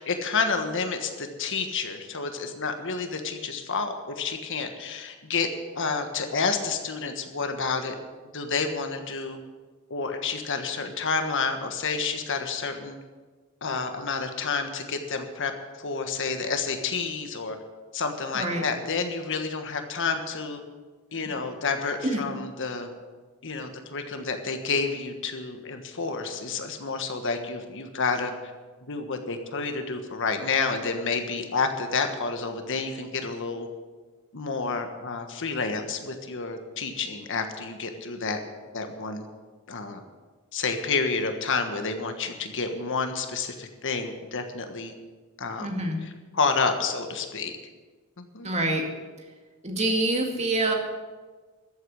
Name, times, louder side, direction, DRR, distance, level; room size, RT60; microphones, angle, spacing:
voice 1, 0.0-5.5 5.7-7.9 8.3-9.4 9.9-13.0 13.6-15.5 15.8-17.6 17.9-20.6 21.1-22.9 23.4-28.3 28.9-33.7 34.3-38.4 38.7-39.2 39.7-40.0 40.5-44.9 45.4-45.7 46.0-47.5 48.2-48.5, left 4 dB, 60° left, 6 dB, 1.4 m, -29 dB
voice 2, 45.6-46.0 48.4-48.9 49.6-50.7, right 2 dB, 30° right, 2 dB, 2.1 m, -26 dB
13.5 x 8.1 x 8.6 m, 1.4 s
head